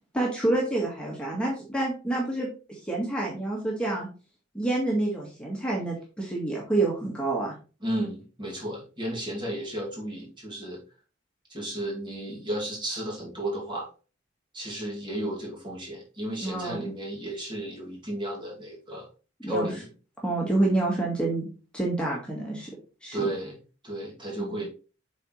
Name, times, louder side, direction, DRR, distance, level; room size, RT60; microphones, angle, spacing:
voice 1, 0.1-4.1 4.5-7.5 16.4-16.9 19.4-19.7 20.2-22.7 23.0-23.3 24.4-24.6, right 2 dB, 5° left, -3 dB, 1.7 m, -28 dB
voice 2, 7.8-10.8 11.5-13.9 14.5-19.1 19.5-19.9 23.1-23.6 23.8-24.7, right 1 dB, 25° right, -3 dB, 2.4 m, -33 dB
7.9 x 4.3 x 3.2 m, 0.35 s
head